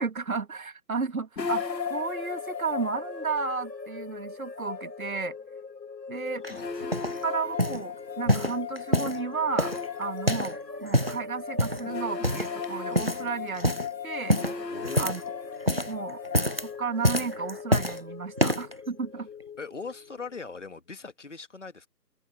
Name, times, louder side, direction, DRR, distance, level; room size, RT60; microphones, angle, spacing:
voice 1, 0.0-5.4 6.1-6.4 6.8-6.9 7.2-14.4 15.0-15.2 15.9-16.2 16.6-19.3, right 4 dB, 55° right, 1.9 m, -33 dB
sound 1, 1.4-20.5, left 5 dB, 75° left, 1.8 m, -37 dB
sound 2, 6.4-7.2 7.6-7.8 8.3-9.2 9.6-10.6 10.8-11.2 11.6-11.9 12.2-12.6 12.9-13.3 13.5-13.9 14.3-15.3 15.6-15.9 16.2-16.7 17.0-18.0 18.4-18.7 19.4-19.5, equal, 35° right, 0.6 m, -26 dB
voice 2, 6.5-7.2 14.7-15.2 19.6-21.9, left 4 dB, 45° left, 2.0 m, -41 dB
figure-of-eight pair, 180°, 50 cm